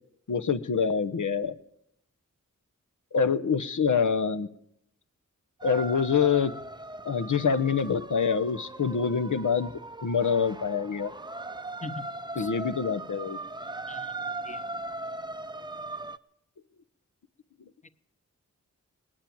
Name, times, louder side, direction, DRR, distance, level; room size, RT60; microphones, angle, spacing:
voice 1, 0.3-1.5 3.1-4.5 5.6-6.5 7.0-9.7 10.0-11.1 12.4-13.4, left 6 dB, 75° left, 10 dB, 0.9 m, -26 dB
sound 1, 5.6-16.2, right 2 dB, 15° right, 0.6 m, -39 dB
voice 2, 11.8-12.1 12.4-12.5 13.9-14.2 14.4-14.6, left 2 dB, 25° left, 12 dB, 0.9 m, -40 dB
18.5 x 8.8 x 8.7 m, 0.77 s
cardioid pair, 45°, 31 cm